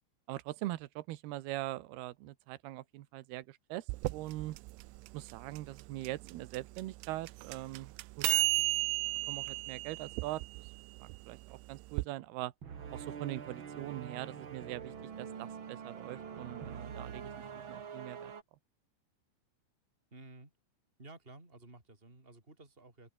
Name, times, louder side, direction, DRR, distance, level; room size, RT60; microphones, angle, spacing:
voice 1, 0.3-4.6 5.1-8.3 9.3-10.4 11.0-12.5 12.9-14.9 15.2-17.3 17.7-18.3, right 16 dB, 70° right, 2.7 m, -42 dB
sound 1, 3.9-12.1, right 22 dB, 90° right, 3.2 m, -35 dB
sound 2, 12.6-18.4, right 7 dB, 55° right, 1.4 m, -45 dB
voice 2, 20.1-20.5 21.0-23.1, right 2 dB, 10° right, 5.6 m, -54 dB
omnidirectional pair, 5.4 m